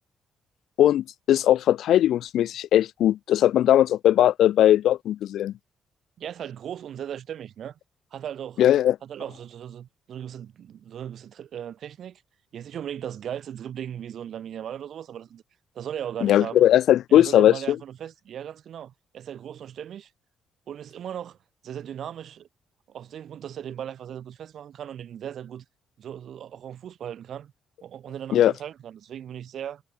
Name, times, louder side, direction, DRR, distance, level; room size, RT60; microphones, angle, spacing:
voice 1, 0.8-5.5 8.6-9.0 16.2-17.8 28.3-28.5, left 12 dB, 75° left, 0.7 m, -19 dB
voice 2, 6.2-7.8 8.1-8.6 9.0-12.2 12.5-15.4 15.7-16.6 17.1-20.1 20.7-21.4 21.6-22.5 22.9-25.6 26.0-27.5 27.8-29.8, right 9 dB, 65° right, 6.2 m, -37 dB
cardioid pair, 90°, 0 cm